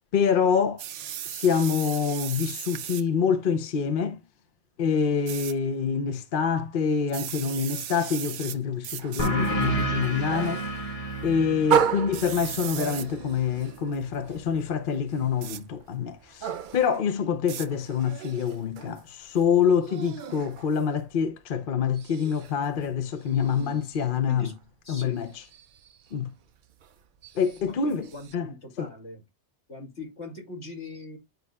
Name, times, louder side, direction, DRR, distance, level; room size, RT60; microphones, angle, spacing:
voice 1, 0.1-0.8 1.3-4.2 4.8-10.7 11.2-24.5 24.9-25.4 26.1-26.3 27.4-28.1 28.3-28.5 28.8-28.9, left 6 dB, 55° left, 0.8 m, -26 dB
sound 1, 0.8-3.1 5.3-5.5 7.1-8.6 8.8-9.3 10.1-10.5 12.1-13.1 15.4-15.6 17.5-17.7, right 11 dB, 85° right, 0.9 m, -37 dB
sound 2, 8.9-21.4 21.7-28.4, right 8 dB, 55° right, 0.6 m, -35 dB
sound 3, 9.2-14.4, right 2 dB, 30° left, 1.3 m, -32 dB
voice 2, 23.3-23.8 24.3-24.6 24.8-25.2 27.7-29.2 29.7-31.2, left 3 dB, 70° left, 2.7 m, -41 dB
9.3 x 5.3 x 2.3 m
omnidirectional pair, 1.2 m